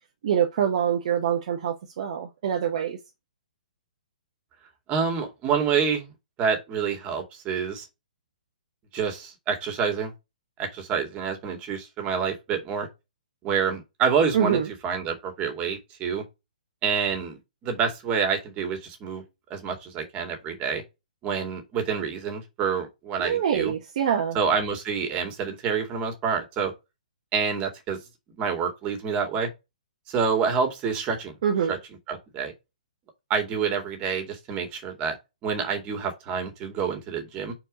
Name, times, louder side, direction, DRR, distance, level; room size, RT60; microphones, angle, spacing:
voice 1, 0.2-3.0 14.3-14.7 23.2-24.4 31.4-31.8, right 8 dB, 55° right, 1.0 m, -25 dB
voice 2, 4.9-6.1 6.4-7.8 8.9-10.1 10.6-12.9 13.4-16.2 16.8-19.2 19.5-20.8 21.2-23.7 24.3-26.7 27.3-28.0 28.4-29.5 30.1-31.3 31.7-31.8 32.1-32.5 33.3-35.2 35.4-37.5, right 6 dB, 25° right, 2.3 m, -27 dB
4.6 x 4.4 x 5.0 m
hypercardioid pair, 135°, 4 cm